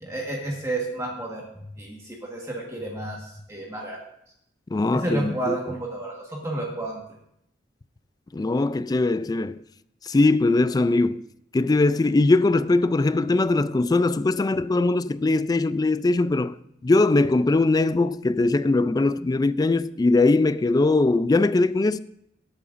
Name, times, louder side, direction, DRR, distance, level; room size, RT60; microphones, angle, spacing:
voice 1, 0.0-4.0 4.9-7.0, right 2 dB, 15° right, 1.4 m, -31 dB
voice 2, 4.7-5.6 8.3-9.6 10.0-11.2 11.5-16.6 16.8-22.0, left 2 dB, 20° left, 0.3 m, -21 dB
19.0 x 8.7 x 2.6 m
head